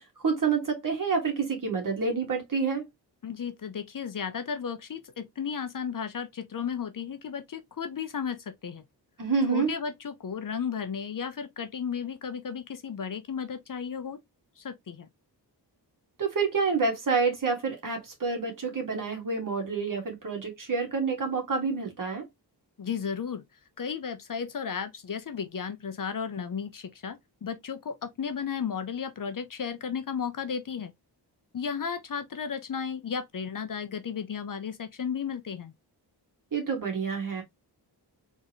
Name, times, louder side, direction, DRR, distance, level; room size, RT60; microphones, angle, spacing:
voice 1, 0.0-2.9 9.2-9.7 16.2-22.3 36.5-37.4, right 5 dB, 50° right, 2.0 m, -28 dB
voice 2, 3.2-8.8 9.5-14.2 14.6-15.1 22.8-23.4 23.8-30.9 31.5-35.7, left 7 dB, 50° left, 0.7 m, -34 dB
4.1 x 3.5 x 3.0 m
wide cardioid pair, 170°, 41 cm